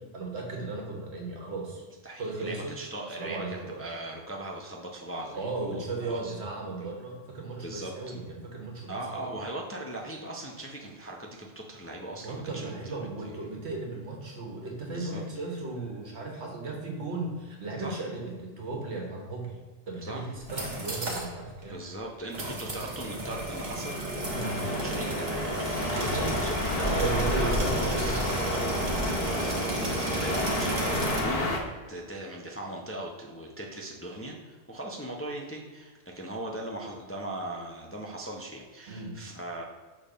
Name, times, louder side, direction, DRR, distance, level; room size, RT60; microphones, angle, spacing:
voice 1, 0.0-1.8 2.2-2.8 3.2-3.8 5.3-9.3 12.2-19.6 19.9-21.8 24.3-24.5 25.9-26.3 26.8-29.0 38.9-39.2, right 3 dB, 75° right, 0 dB, 1.6 m, -36 dB
voice 2, 2.0-6.3 6.6-6.9 7.6-7.9 8.9-13.0 13.2-13.7 14.9-15.2 17.8-18.0 20.0-20.3 21.7-28.2 29.3-31.5 31.9-39.6, right 1 dB, 15° left, -1 dB, 0.6 m, -39 dB
sound 1, 20.4-21.3 21.6-21.7 22.3-31.2, right 1 dB, 45° right, 1.2 m, -32 dB
sound 2, 24.2-31.6, left 1 dB, 60° left, 1.2 m, -31 dB
6.6 x 3.5 x 5.0 m, 1.4 s
omnidirectional pair, 1.1 m